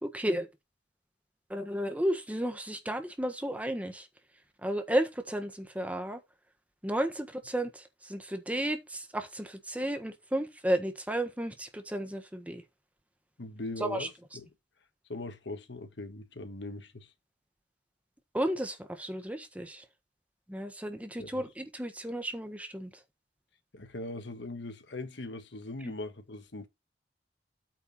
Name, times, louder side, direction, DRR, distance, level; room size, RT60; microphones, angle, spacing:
voice 1, 0.0-0.5 1.5-4.0 4.6-6.2 6.8-7.8 8.1-12.6 13.8-14.1 18.3-19.8 20.5-22.9, right 1 dB, 10° right, 1.4 m, -33 dB
voice 2, 13.4-14.5 15.1-17.1 21.2-21.5 23.7-26.7, left 2 dB, 75° left, 1.3 m, -40 dB
8.8 x 4.5 x 5.7 m
head